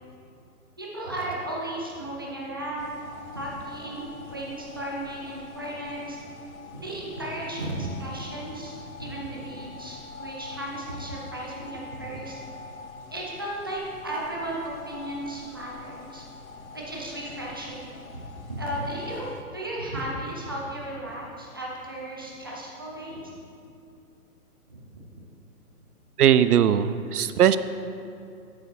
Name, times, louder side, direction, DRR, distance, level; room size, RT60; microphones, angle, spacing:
voice 1, 0.8-2.9 3.3-6.2 6.7-12.4 13.1-16.3 16.7-18.2 18.5-23.3 24.7-25.0, right 1 dB, 15° right, -4 dB, 0.4 m, -35 dB
sound 1, 2.8-19.4, left 3 dB, 65° left, 0.8 m, -45 dB
voice 2, 26.2-27.6, right 9 dB, 75° right, 13 dB, 0.5 m, -19 dB
9.3 x 8.4 x 3.0 m, 2.6 s
hypercardioid pair, 140°, 46 cm